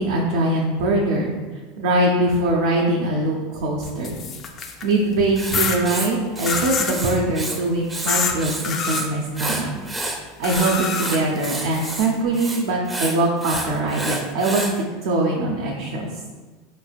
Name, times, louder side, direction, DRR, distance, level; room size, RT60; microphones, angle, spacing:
voice 1, 0.0-1.3 1.8-4.2 4.8-9.7 10.4-14.6 15.0-16.1, right 2 dB, 75° right, -2 dB, 0.5 m, -22 dB
sound 1, 3.8-4.9 5.5-5.8 6.5-7.0 8.1-8.3 8.6-9.0 10.4-12.0, left 5 dB, 40° left, 0.4 m, -26 dB
Writing, 5.4-7.6 7.9-9.1 9.4-14.8, right 2 dB, 15° right, 0.5 m, -30 dB
4.0 x 3.2 x 2.3 m, 1.3 s
hypercardioid pair, 105°, 0 cm